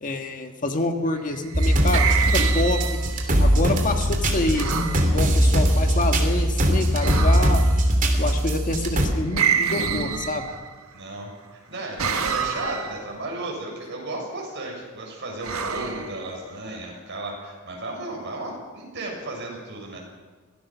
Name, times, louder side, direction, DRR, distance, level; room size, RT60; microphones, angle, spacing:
voice 1, 0.0-2.1 2.3-3.0 3.4-4.7 5.1-7.7 8.2-10.5, left 2 dB, 40° left, 5 dB, 1.7 m, -27 dB
sound 1, 1.3-3.3 4.5-5.0 7.0-7.7 9.3-10.8 12.0-13.0 15.4-16.6, right 6 dB, 80° right, 1.6 m, -27 dB
sound 2, 1.5-9.1, equal, 40° right, 2.9 m, -20 dB
voice 2, 10.9-20.0, right 2 dB, 55° right, -1 dB, 6.9 m, -34 dB
24.0 x 17.5 x 6.2 m, 1.4 s
head